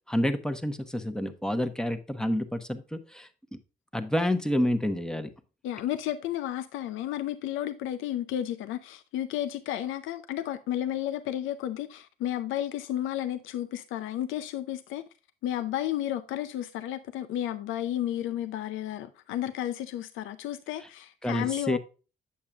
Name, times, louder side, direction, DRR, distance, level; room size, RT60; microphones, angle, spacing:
voice 1, 0.1-3.3 3.9-5.3 20.8-20.9 21.2-21.8, left 1 dB, 5° left, 1.1 m, -28 dB
voice 2, 5.6-15.0 15.4-21.8, left 12 dB, 90° left, 0.6 m, -32 dB
8.6 x 7.3 x 2.4 m
cardioid pair, 90°, 20 cm